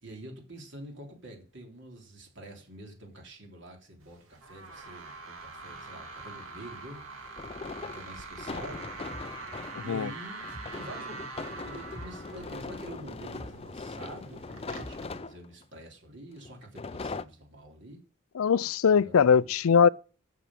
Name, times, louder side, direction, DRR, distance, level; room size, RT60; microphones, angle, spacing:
voice 1, 0.0-7.0 7.8-8.9 9.8-18.0 18.5-18.7 19.0-19.5, right 1 dB, 55° right, 3.5 m, -46 dB
sound 1, 4.0-15.0, right 3 dB, 80° right, 2.4 m, -44 dB
sound 2, 7.2-9.9 10.4-15.6 16.4-17.2, left 3 dB, 30° left, 0.4 m, -40 dB
sound 3, 9.1-9.3 10.5-10.7 11.9-12.1 13.3-13.5 14.8-15.0, equal, 40° right, 3.3 m, -44 dB
voice 2, 9.8-10.1 18.3-19.9, left 6 dB, 85° left, 0.4 m, -21 dB
8.4 x 7.1 x 8.7 m
head